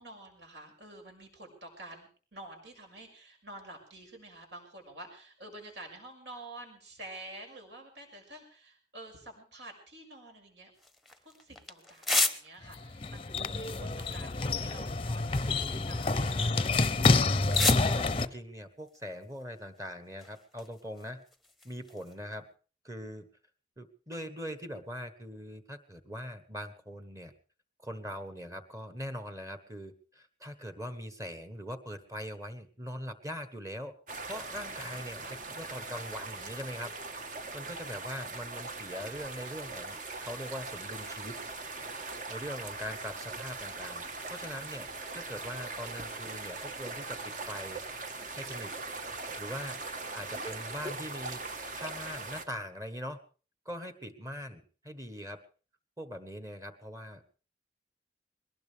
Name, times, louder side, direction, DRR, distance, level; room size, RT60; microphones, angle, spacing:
voice 1, 0.0-10.7 11.2-16.6 34.5-35.4, right 1 dB, 70° right, 3 dB, 6.1 m, -49 dB
sound 1, 10.7-12.9 13.7-16.9 17.4-17.9 18.8-19.9 20.2-22.4, left 2 dB, ahead, 1.0 m, -36 dB
sound 2, 12.6-18.3, left 3 dB, 30° left, 0.7 m, -28 dB
voice 2, 17.9-21.2 21.6-22.5 22.8-23.3 23.8-27.3 27.8-33.9 34.3-36.9 37.3-41.4 42.3-44.0 44.3-44.9 45.1-47.8 48.3-48.8 49.4-49.8 50.1-51.4 51.7-53.2 53.6-55.4 56.0-57.2, equal, 15° right, 9 dB, 1.3 m, -42 dB
sound 3, 34.1-52.4, right 3 dB, 45° right, 1.4 m, -40 dB
21.5 x 19.5 x 3.5 m, 0.39 s
head